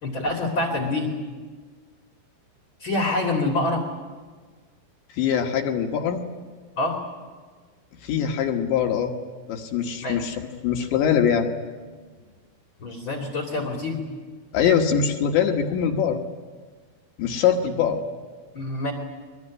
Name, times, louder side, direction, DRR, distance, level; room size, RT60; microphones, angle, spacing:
voice 1, 0.0-1.1 2.8-3.8 6.8-7.0 10.0-10.2 12.8-14.0 18.5-18.9, left 2 dB, 30° left, 1 dB, 2.7 m, -26 dB
voice 2, 5.2-6.2 8.0-9.1 9.5-11.5 14.5-16.2 17.2-18.0, left 8 dB, 70° left, 2 dB, 3.5 m, -23 dB
23.0 x 22.0 x 9.8 m, 1.4 s
omnidirectional pair, 5.5 m